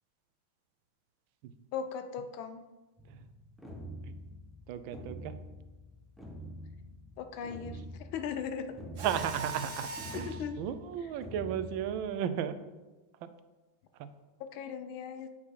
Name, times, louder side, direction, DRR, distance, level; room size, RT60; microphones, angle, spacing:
voice 1, 1.7-2.6 7.2-7.8 8.1-8.7 10.1-10.6 14.5-15.3, left 7 dB, 80° left, 8 dB, 1.5 m, -38 dB
sound 1, 3.0-12.1, equal, ahead, 0.5 m, -46 dB
voice 2, 4.7-5.4 9.0-12.6 13.2-13.3 14.0-14.1, right 9 dB, 75° right, 11 dB, 1.3 m, -35 dB
Mechanisms, 9.0-10.4, right 4 dB, 55° right, 1.5 m, -40 dB
8.7 x 5.7 x 4.8 m, 1.2 s
omnidirectional pair, 2.3 m